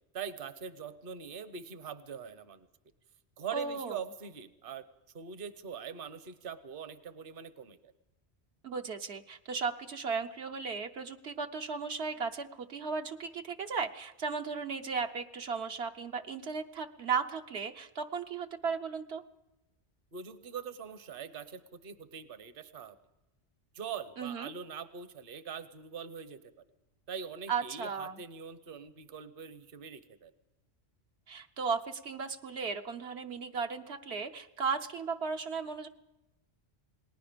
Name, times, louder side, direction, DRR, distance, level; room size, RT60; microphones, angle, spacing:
voice 1, 0.1-2.7 3.4-4.9 5.1-7.9 20.1-23.0 23.7-26.4 27.1-30.3, right 7 dB, 55° right, 12 dB, 1.1 m, -43 dB
voice 2, 3.5-4.0 8.6-19.2 24.2-24.5 27.5-28.2 31.3-35.9, right 5 dB, 75° right, 5 dB, 1.2 m, -36 dB
28.5 x 19.5 x 5.2 m, 0.97 s
omnidirectional pair, 1.1 m